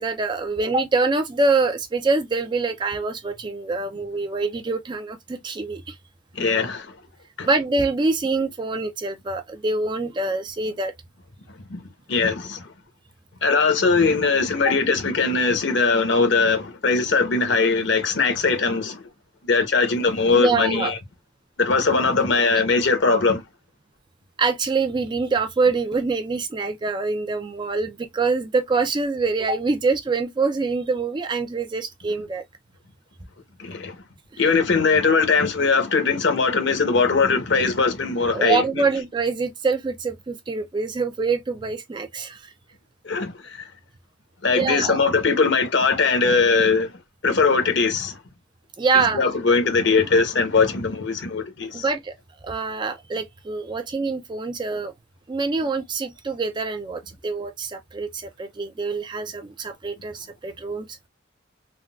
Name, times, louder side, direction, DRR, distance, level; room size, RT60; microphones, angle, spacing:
voice 1, 0.0-6.0 7.4-10.9 14.7-14.8 20.3-21.0 24.4-32.4 34.3-34.4 38.3-42.5 44.5-45.0 48.8-49.3 51.7-52.1 52.4-54.9 55.3-61.1, right 4 dB, 25° right, 0.3 m, -25 dB
voice 2, 6.3-6.9 7.4-7.5 11.7-11.8 12.1-12.7 13.4-19.0 19.4-21.0 21.6-23.4 33.6-34.0 34.4-38.9 43.0-43.7 44.4-46.9 47.2-48.2 48.9-51.8, left 4 dB, 60° left, 0.8 m, -20 dB
3.5 x 2.2 x 2.3 m
head